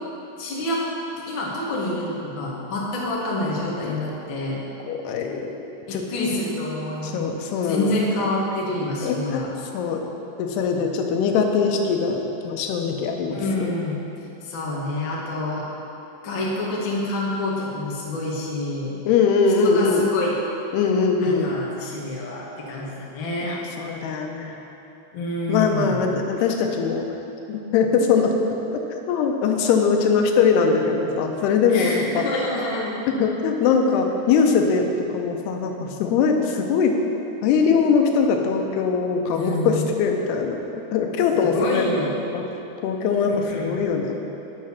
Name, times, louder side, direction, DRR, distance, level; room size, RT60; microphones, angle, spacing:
voice 1, 0.4-4.6 5.9-7.3 7.6-9.5 13.3-14.0 14.4-15.6 16.2-19.0 19.6-20.3 21.2-23.6 25.1-26.0 31.7-32.9 33.9-34.0 39.3-39.9 41.3-42.2 43.3-43.8, left 1 dB, 70° left, -5 dB, 1.1 m, -27 dB
voice 2, 4.9-5.5 5.9-6.0 7.0-7.9 9.0-9.4 9.7-10.0 10.4-13.4 19.1-20.1 20.7-21.6 23.4-24.6 25.5-27.1 27.5-28.3 29.1-32.3 33.2-37.0 37.4-40.6 40.9-41.8 42.3-42.4 42.8-44.2, left 5 dB, 90° left, 3 dB, 2.8 m, -21 dB
9.1 x 6.6 x 5.6 m, 2.9 s
omnidirectional pair, 4.6 m